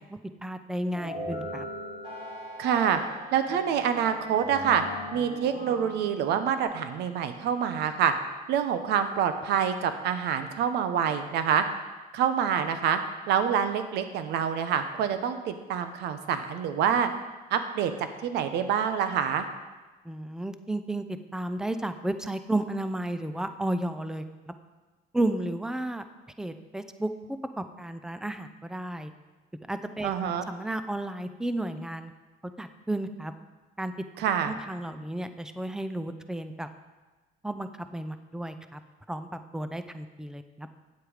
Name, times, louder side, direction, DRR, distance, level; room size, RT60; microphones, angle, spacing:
voice 1, 0.0-1.7 20.0-24.2 25.1-26.0 26.4-29.1 29.7-32.1 32.6-33.3 33.8-33.9 34.5-36.7 37.4-38.8 39.1-40.7, right 1 dB, 5° right, 10 dB, 0.6 m, -33 dB
sound 1, 0.9-6.6, left 1 dB, 30° right, 3.7 m, -39 dB
voice 2, 2.6-3.0 3.3-4.8 5.1-8.1 8.5-11.6 12.1-13.0 13.3-17.1 17.5-19.5 30.0-30.4 34.2-34.5, right 8 dB, 80° right, 9 dB, 0.9 m, -26 dB
9.3 x 7.9 x 5.0 m, 1.2 s
cardioid pair, 110°, 17 cm